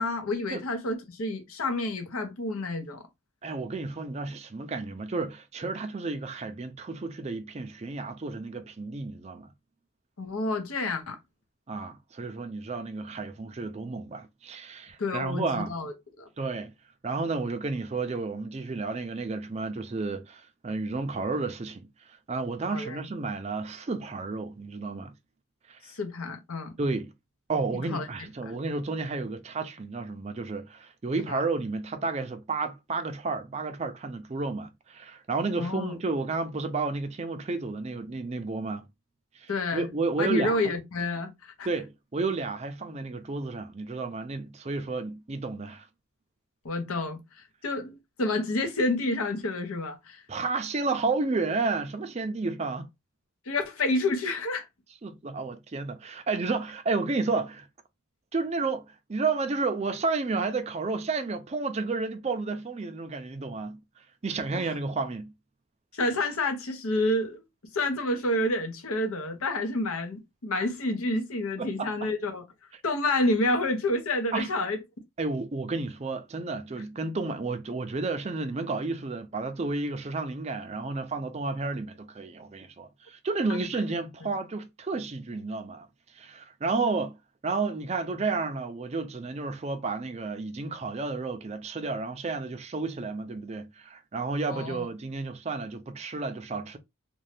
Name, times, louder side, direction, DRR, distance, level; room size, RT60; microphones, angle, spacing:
voice 1, 0.0-3.0 10.2-11.2 15.0-16.3 22.7-23.0 25.9-26.7 27.7-28.1 28.5-28.6 31.3-31.4 35.6-35.9 39.5-39.9 40.2-41.7 46.6-47.2 47.6-50.2 53.5-54.6 64.5-64.6 65.9-67.4 67.7-72.4 72.8-74.8 94.5-94.9, left 2 dB, 75° left, 0.8 m, -29 dB
voice 2, 3.4-9.5 11.7-15.7 16.4-16.7 17.0-25.1 25.7-25.9 26.8-27.1 27.5-38.8 39.3-40.6 41.6-45.9 50.3-52.9 55.0-57.7 58.3-58.8 59.1-65.3 71.6-71.9 74.3-74.5 75.2-85.9 86.1-87.2 87.4-96.8, right 3 dB, 30° right, 0.4 m, -31 dB
2.6 x 2.2 x 3.3 m
head